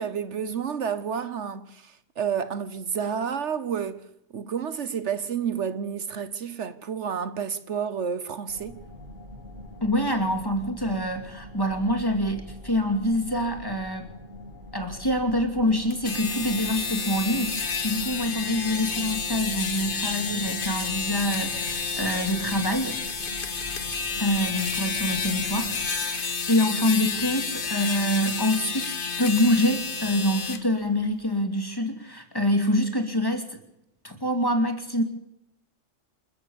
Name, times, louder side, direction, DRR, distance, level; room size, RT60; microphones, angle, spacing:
voice 1, 0.0-4.1 4.3-8.8, right 7 dB, 70° right, 1.3 m, -30 dB
sound 1, 8.5-25.9, left 1 dB, 40° right, 8.2 m, -44 dB
voice 2, 9.8-14.1 14.7-23.0 24.2-33.6 34.0-35.0, left 1 dB, 20° left, 2.5 m, -26 dB
sound 2, 15.9-30.6, left 5 dB, 45° left, 1.5 m, -30 dB
27.0 x 14.5 x 7.2 m
omnidirectional pair, 1.3 m